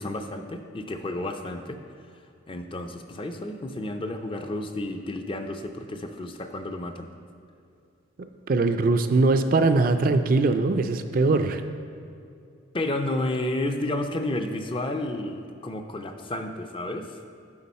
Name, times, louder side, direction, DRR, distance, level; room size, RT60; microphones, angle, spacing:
voice 1, 0.0-1.8 2.5-7.1 12.7-17.2, left 1 dB, 30° left, 6 dB, 0.5 m, -31 dB
voice 2, 8.5-11.6, right 3 dB, 50° right, 8 dB, 0.4 m, -21 dB
9.6 x 6.2 x 4.2 m, 2.5 s
head